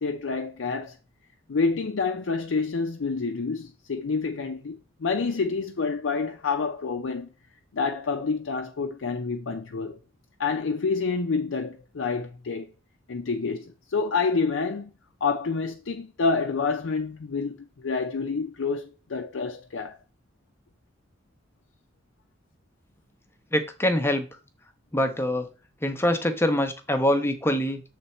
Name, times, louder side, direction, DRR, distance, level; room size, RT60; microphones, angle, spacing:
voice 1, 0.0-1.0 1.5-7.3 7.7-10.0 10.4-12.7 13.1-14.9 15.2-20.0, left 4 dB, 80° left, 0.5 m, -28 dB
voice 2, 23.5-24.3 24.9-25.5 25.8-27.8, left 1 dB, 15° left, 0.7 m, -24 dB
6.8 x 3.3 x 4.2 m
head